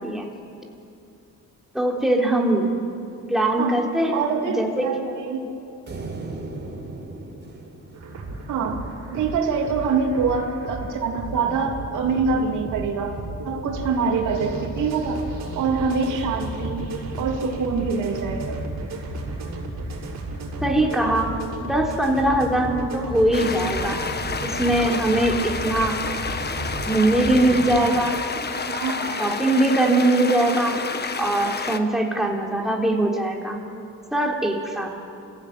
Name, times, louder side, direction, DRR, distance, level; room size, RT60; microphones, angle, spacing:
voice 1, 1.7-2.8 3.3-4.2 4.6-4.9 20.6-24.0 24.4-26.0 26.8-28.2 29.1-30.8 31.2-33.6 34.1-34.9, right 1 dB, ahead, -1 dB, 3.7 m, -21 dB
voice 2, 3.6-5.4 8.5-13.2 13.4-15.2 15.5-16.9 17.2-18.6 28.7-29.3, right 5 dB, 80° right, 1 dB, 3.3 m, -25 dB
sound 1, 5.9-9.2, right 2 dB, 35° right, 5.0 m, -37 dB
sound 2, 7.9-27.8, right 2 dB, 60° right, 6.7 m, -33 dB
sound 3, 23.3-31.8, left 5 dB, 35° left, 1.5 m, -29 dB
27.0 x 16.0 x 9.3 m, 2.6 s
cardioid pair, 90°, 30 cm